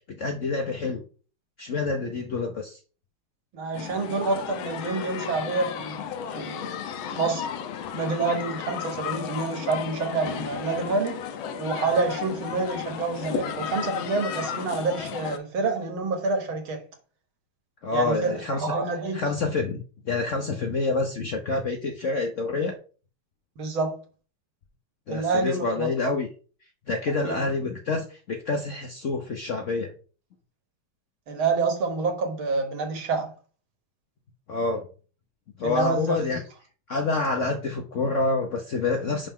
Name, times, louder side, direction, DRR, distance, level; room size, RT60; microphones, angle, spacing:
voice 1, 0.2-1.0 1.6-2.8 17.8-18.7 19.1-22.8 25.1-26.3 26.9-29.9 34.5-34.8 35.6-36.4 36.9-39.3, left 3 dB, 60° left, 0.8 m, -27 dB
voice 2, 3.5-6.1 6.3-6.7 7.1-7.5 7.9-11.2 11.6-16.8 17.9-19.2 23.6-24.0 25.1-26.1 27.2-27.4 31.3-33.3 35.6-36.4, right 3 dB, 80° right, 2.1 m, -28 dB
sound 1, 3.7-15.4, left 8 dB, 85° left, 1.6 m, -34 dB
5.7 x 5.3 x 3.6 m
omnidirectional pair, 2.2 m